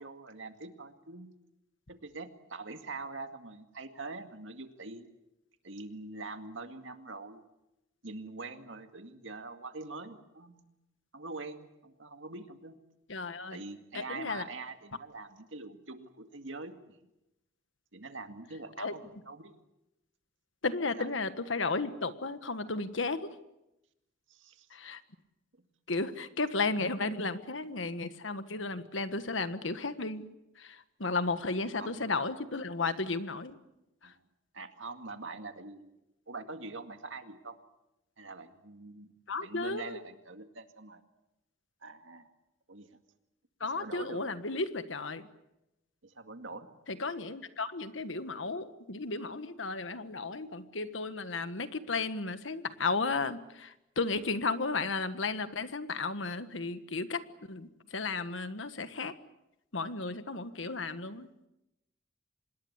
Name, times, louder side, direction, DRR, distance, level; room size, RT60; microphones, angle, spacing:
voice 1, 0.0-1.3 1.9-5.1 5.6-7.4 8.0-10.7 11.1-12.8 13.5-17.0 17.9-19.6 21.0-21.1 24.3-24.7 31.7-32.1 34.0-34.1 34.5-36.0 36.3-37.6 38.2-39.1 39.4-41.0 41.8-42.3 42.7-43.0 43.6-44.3 46.0-46.7, right 3 dB, 75° right, 7 dB, 2.2 m, -44 dB
voice 2, 13.1-13.6 13.9-14.4 18.8-18.9 20.6-23.3 24.7-25.0 25.9-30.2 30.6-33.6 34.0-34.1 39.3-40.0 43.6-45.2 46.9-59.1 59.7-61.3, left 3 dB, 75° left, 11 dB, 1.5 m, -34 dB
26.0 x 21.0 x 8.1 m, 0.91 s
head